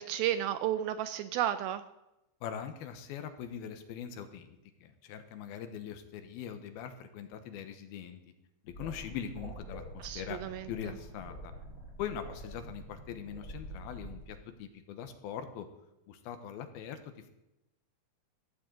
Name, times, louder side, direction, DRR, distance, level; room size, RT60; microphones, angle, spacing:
voice 1, 0.0-1.8 10.0-10.7, right 11 dB, 80° right, 11 dB, 2.2 m, -32 dB
voice 2, 2.4-8.2 8.6-10.4 10.7-11.5 12.0-15.7 16.1-17.0, left 9 dB, 75° left, 8 dB, 2.8 m, -42 dB
sound 1, 8.7-14.2, right 1 dB, 30° left, 4.0 m, -46 dB
15.0 x 15.0 x 3.9 m, 0.90 s
omnidirectional pair, 4.6 m